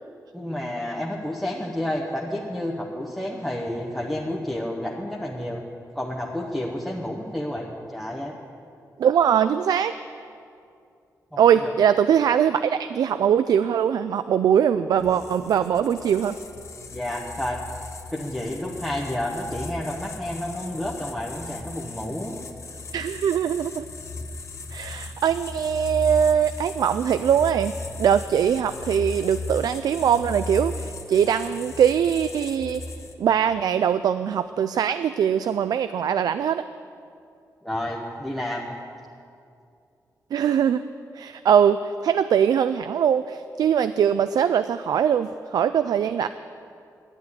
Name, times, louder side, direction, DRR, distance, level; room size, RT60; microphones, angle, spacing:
voice 1, 0.3-5.6 5.9-8.3 11.3-11.7 16.9-17.6 18.1-22.4 37.6-38.7, left 1 dB, 5° left, -3 dB, 1.1 m, -30 dB
voice 2, 9.0-9.9 11.4-16.4 22.9-23.8 24.7-27.7 28.0-32.8 33.2-36.6 40.3-40.8 41.1-46.3, right 8 dB, 80° right, 12 dB, 0.3 m, -21 dB
sound 1, 15.0-33.3, left 3 dB, 50° left, 1.1 m, -37 dB
11.0 x 9.4 x 9.7 m, 2.5 s
wide cardioid pair, 130°, 7 cm